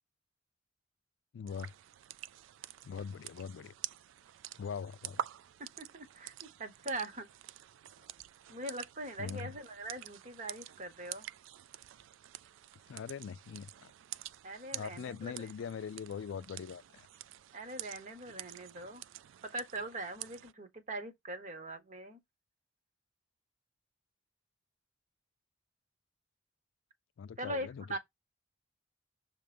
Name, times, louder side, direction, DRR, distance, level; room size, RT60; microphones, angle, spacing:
voice 1, 1.3-1.7 2.8-3.7 4.6-5.3 9.2-9.5 12.9-13.9 14.7-17.1 27.2-28.0, left 6 dB, 75° left, 0.3 m, -42 dB
sound 1, 1.5-20.5, right 12 dB, 90° right, 0.3 m, -48 dB
voice 2, 5.6-7.3 8.5-11.3 14.4-15.5 17.5-19.0 19.4-22.2 27.4-28.0, right 1 dB, 40° right, 1.2 m, -42 dB
6.5 x 3.0 x 5.1 m
head